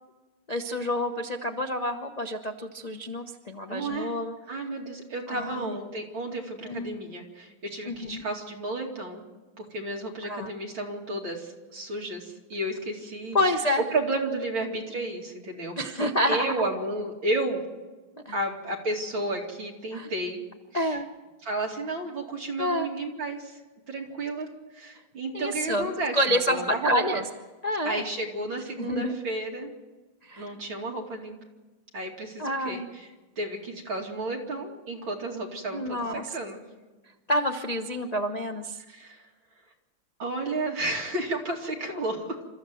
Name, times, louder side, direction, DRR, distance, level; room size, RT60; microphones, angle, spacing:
voice 1, 0.5-4.3 5.3-5.8 6.7-7.0 7.9-8.2 10.2-10.5 13.3-13.8 15.8-16.7 18.2-18.4 19.9-20.1 20.7-21.1 22.6-22.9 25.3-27.2 27.6-28.0 28.8-29.2 30.2-30.5 32.4-32.9 35.7-36.4 37.3-38.8, left 1 dB, 60° left, 3 dB, 0.4 m, -28 dB
voice 2, 3.7-4.2 4.5-9.3 9.6-13.4 13.8-17.6 18.3-20.4 20.7-21.0 21.4-23.6 23.9-27.2 27.9-29.7 30.4-31.4 31.9-33.1 33.4-36.0 36.3-36.6 38.9-39.2 40.2-42.4, right 2 dB, 65° right, 0 dB, 3.4 m, -32 dB
28.0 x 14.0 x 7.8 m, 1.2 s
omnidirectional pair, 2.4 m